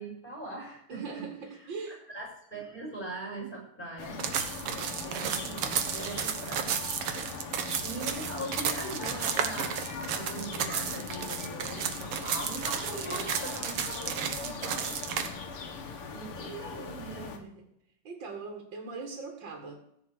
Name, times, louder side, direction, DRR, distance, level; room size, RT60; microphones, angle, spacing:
voice 1, 0.0-1.2 1.9-4.2 4.7-9.8 10.1-15.0 16.1-17.3, right 2 dB, 20° left, -1 dB, 6.6 m, -41 dB
voice 2, 0.9-2.0 17.2-17.7 18.0-19.8, right 4 dB, 60° right, 2 dB, 2.6 m, -41 dB
sound 1, 4.0-17.4, left 5 dB, 85° left, 2.5 m, -40 dB
sound 2, 4.2-15.3, right 8 dB, 85° right, 2.1 m, -33 dB
15.0 x 5.6 x 8.4 m, 0.75 s
omnidirectional pair, 2.4 m